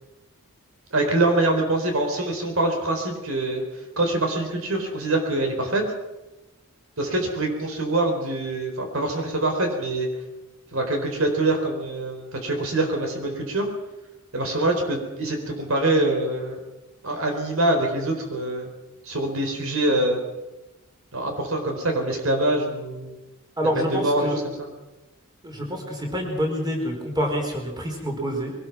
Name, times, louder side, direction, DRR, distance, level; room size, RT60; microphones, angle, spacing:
voice 1, 0.9-3.6 4.0-5.8 7.0-10.1 10.7-13.7 14.3-16.6 17.0-18.7 19.0-20.2 21.1-23.2 23.8-24.3 24.6-24.7, right 2 dB, 65° right, 4 dB, 4.3 m, -24 dB
voice 2, 23.6-24.4 25.4-28.5, equal, 20° right, 1 dB, 4.5 m, -27 dB
22.5 x 19.5 x 6.1 m, 1.0 s
head